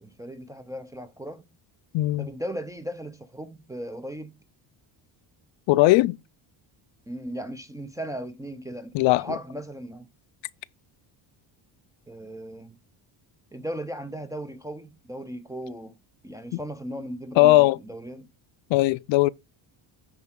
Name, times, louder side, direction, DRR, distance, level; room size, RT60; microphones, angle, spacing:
voice 1, 0.0-1.4 2.2-4.3 7.1-10.1 12.1-12.8 13.5-16.0 16.2-18.3, equal, 10° right, 0.4 m, -37 dB
voice 2, 1.9-2.3 5.7-6.2 8.9-9.3 17.4-17.8 18.7-19.3, left 18 dB, 70° left, 0.5 m, -19 dB
9.9 x 4.7 x 3.6 m
cardioid pair, 160°, 46 cm